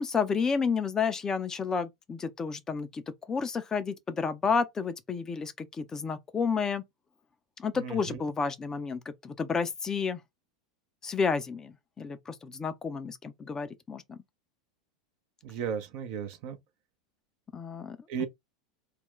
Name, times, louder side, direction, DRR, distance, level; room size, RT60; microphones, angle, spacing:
voice 1, 0.0-3.0 3.3-6.8 7.6-10.2 11.0-14.2 17.5-18.3, left 5 dB, 20° left, 0.5 m, -31 dB
voice 2, 15.4-16.6 18.1-18.3, right 7 dB, 50° right, 0.7 m, -34 dB
2.4 x 2.2 x 3.7 m
figure-of-eight pair, 85°, 3 cm